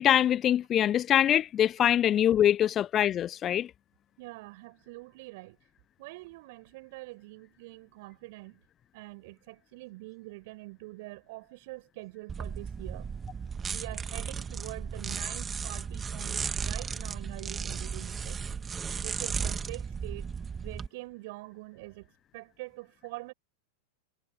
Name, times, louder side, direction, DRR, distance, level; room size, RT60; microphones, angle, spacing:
voice 1, 0.0-3.7, left 10 dB, 30° left, 0.8 m, -24 dB
voice 2, 4.2-5.6 6.0-8.6 8.9-13.1 13.7-18.4 19.0-20.3 20.6-23.3, right 23 dB, 50° right, 7.9 m, -45 dB
sound 1, 12.3-20.9, right 6 dB, 20° right, 2.3 m, -35 dB
figure-of-eight pair, 90°, 0 cm